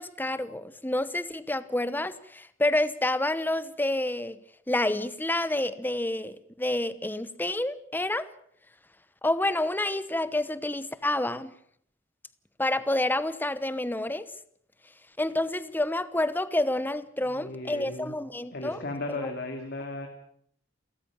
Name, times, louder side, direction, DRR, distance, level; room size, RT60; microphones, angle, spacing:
voice 1, 0.0-4.4 4.7-8.3 9.2-11.5 12.6-14.3 15.2-18.8 19.1-19.3, left 1 dB, 10° left, 15 dB, 1.0 m, -28 dB
voice 2, 17.2-18.1 18.5-20.1, left 2 dB, 55° left, 4 dB, 2.5 m, -36 dB
29.0 x 14.5 x 7.2 m, 0.66 s
head